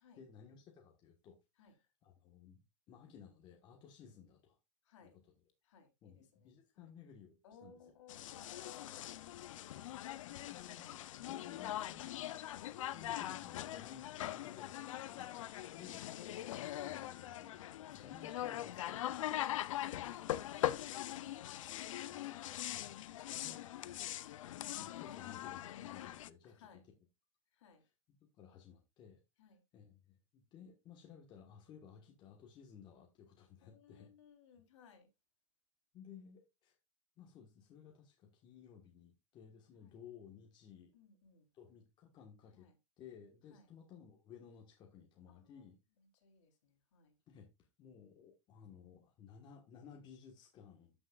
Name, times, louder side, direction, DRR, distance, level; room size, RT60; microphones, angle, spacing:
voice 1, 0.1-4.6 5.0-5.3 6.0-7.9 10.2-15.3 15.6-16.1 16.5-17.6 17.9-19.9 21.7-22.4 22.7-23.1 23.3-23.7 24.6-26.9 27.8-29.2 29.5-34.1 35.9-36.8 37.2-40.9 41.5-42.7 43.0-45.8 47.3-51.0, left 7 dB, 30° left, 1.4 m, -58 dB
voice 2, 4.8-5.2 5.6-6.9 7.4-9.2 19.8-21.4 26.4-26.8 27.5-27.8 29.4-29.6 33.6-35.1 39.8-39.9 40.9-41.5 42.6-42.7 43.5-43.6 45.3-45.6 46.2-47.1, left 6 dB, 65° left, 3.4 m, -63 dB
sound 1, 8.1-26.3, left 13 dB, 80° left, 0.6 m, -42 dB
14.0 x 6.1 x 2.4 m
supercardioid pair, 150°, 16 cm